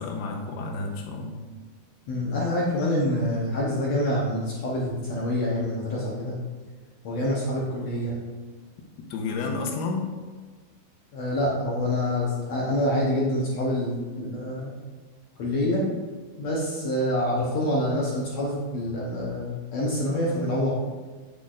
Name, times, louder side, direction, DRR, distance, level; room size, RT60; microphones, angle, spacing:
voice 1, 0.0-1.4 9.1-10.1, left 3 dB, 90° left, 1 dB, 2.8 m, -30 dB
voice 2, 2.1-6.4 7.0-8.2 11.1-14.7 15.4-15.8 16.4-20.7, left 1 dB, 65° left, -5 dB, 1.8 m, -26 dB
8.2 x 8.1 x 2.5 m, 1.4 s
omnidirectional pair, 4.3 m